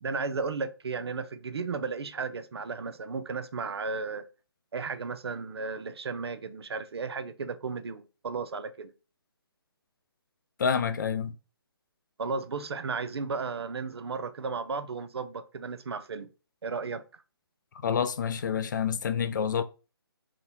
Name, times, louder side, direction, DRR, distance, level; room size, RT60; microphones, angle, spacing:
voice 1, 0.0-4.2 4.7-8.9 12.2-16.3 16.6-17.2, right 4 dB, 80° right, 0.5 m, -34 dB
voice 2, 10.6-11.3 17.8-19.6, left 7 dB, 50° left, 0.4 m, -28 dB
3.8 x 2.2 x 4.1 m
hypercardioid pair, 155°, 13 cm